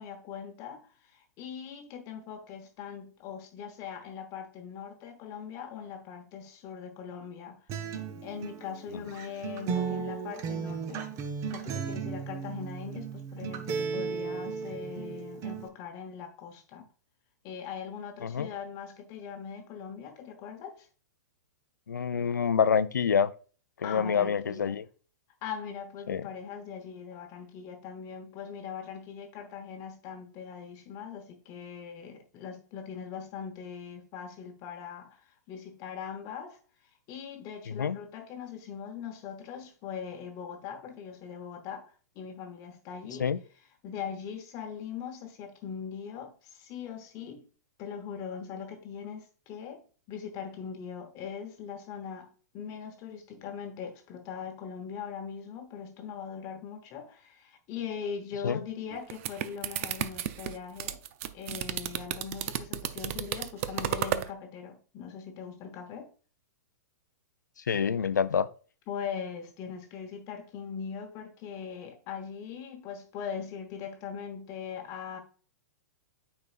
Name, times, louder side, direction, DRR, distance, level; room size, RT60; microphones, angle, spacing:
voice 1, 0.0-7.9 8.1-11.1 11.5-16.9 17.4-20.9 23.8-24.8 25.4-47.4 47.8-49.8 50.1-61.0 61.3-66.1 68.9-75.2, left 7 dB, 35° left, 1.0 m, -41 dB
Acoustic guitar, 7.7-15.7, right 6 dB, 35° right, 0.9 m, -35 dB
voice 2, 21.9-23.3 23.8-24.8 26.1-26.2 37.8-38.0 43.2-43.4 58.4-58.6 67.7-68.5, left 7 dB, 90° left, 0.4 m, -26 dB
sound 1, 58.9-64.3, right 12 dB, 50° right, 0.5 m, -33 dB
9.5 x 4.4 x 2.4 m
hypercardioid pair, 115°, 10 cm